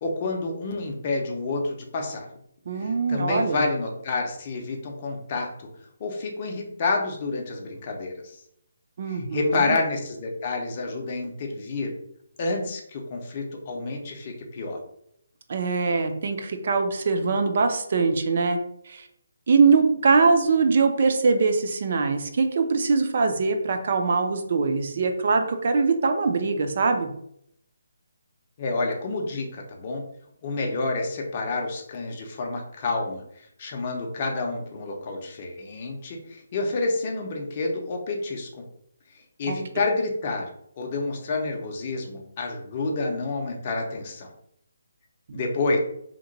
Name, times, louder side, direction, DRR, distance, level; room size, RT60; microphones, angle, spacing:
voice 1, 0.0-2.3 2.7-5.7 6.0-8.4 9.1-11.9 12.4-14.8 28.6-30.0 30.4-33.2 33.6-38.6 39.4-40.5 40.8-44.3 45.3-45.8, left 3 dB, 30° left, 1 dB, 0.5 m, -29 dB
voice 2, 2.7-3.6 9.0-9.8 15.5-18.6 18.9-19.1 19.5-27.1 39.5-39.6 45.3-45.5, right 4 dB, 40° right, 6 dB, 0.4 m, -22 dB
2.8 x 2.1 x 3.8 m, 0.73 s
hypercardioid pair, 170°, 0 cm